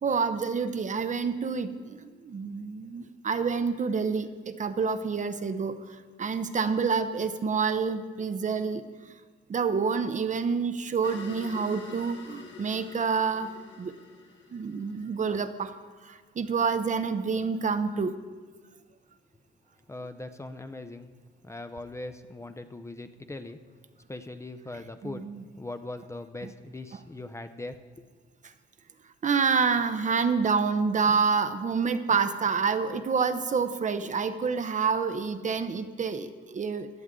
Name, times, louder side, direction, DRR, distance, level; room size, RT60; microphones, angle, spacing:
voice 1, 0.0-9.1 9.5-13.5 13.8-13.9 14.5-15.7 16.0-18.1 25.0-25.4 29.2-36.9, right 5 dB, 40° right, 10 dB, 0.7 m, -28 dB
sound 1, 11.0-15.6, left 5 dB, 70° left, 1.8 m, -47 dB
voice 2, 19.9-21.1 21.4-23.6 24.1-25.3 25.6-27.8, left 2 dB, 15° left, 9 dB, 0.6 m, -40 dB
16.0 x 10.5 x 3.7 m, 1.5 s
cardioid pair, 90°, 20 cm